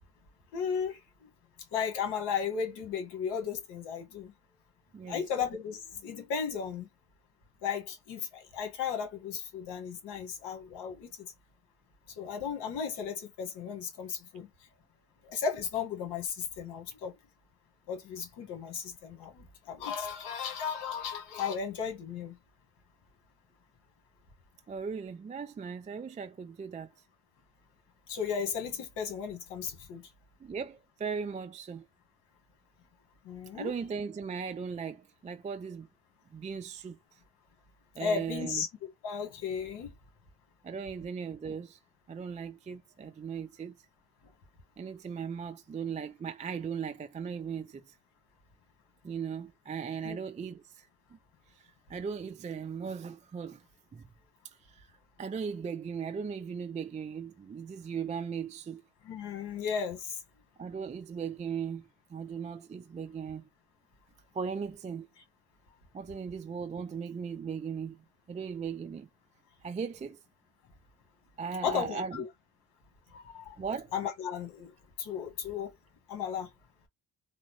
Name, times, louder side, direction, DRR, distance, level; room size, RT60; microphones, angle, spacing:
voice 1, 0.5-1.0 1.7-4.3 5.1-6.9 7.6-11.1 12.2-14.5 15.2-17.1 17.9-22.3 28.1-30.0 33.2-33.7 38.0-38.7 39.0-39.9 50.0-50.2 59.0-60.2 71.6-72.3 73.1-73.5 73.9-74.7 75.0-75.7 76.1-76.5, left 6 dB, 80° left, 1.5 m, -35 dB
voice 2, 24.7-26.9 30.4-31.8 33.5-35.9 36.3-37.0 38.0-38.6 40.6-41.8 42.1-43.8 44.8-48.0 49.0-51.2 51.9-53.6 53.9-54.0 54.7-54.9 55.2-58.8 60.6-63.5 64.3-65.1 65.9-68.0 68.3-69.1 69.6-70.2 71.4-72.2 73.6-73.9, right 6 dB, 20° right, 0.3 m, -38 dB
3.5 x 2.1 x 3.1 m
supercardioid pair, 75°, 41 cm